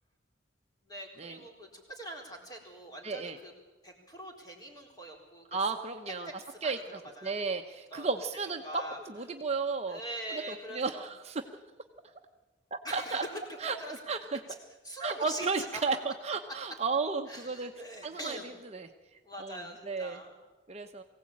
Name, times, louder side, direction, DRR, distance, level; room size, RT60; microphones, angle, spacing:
voice 1, 0.8-3.5 3.8-5.4 6.1-6.8 7.2-7.3 7.9-8.1 8.4-9.0 9.9-11.1 12.8-13.4 13.8-14.0 14.8-15.5 15.7-15.8 17.3-18.5 19.2-20.3, right 1 dB, 20° left, 1 dB, 3.9 m, -43 dB
voice 2, 3.0-3.4 5.5-6.3 6.6-8.6 9.1-10.0 10.5-11.5 12.7-13.2 13.6-13.8 14.1-14.4 15.0-17.7 18.0-18.9 19.4-20.2 20.7-21.0, right 4 dB, 35° right, 5 dB, 0.9 m, -34 dB
22.5 x 16.5 x 8.6 m, 1.2 s
head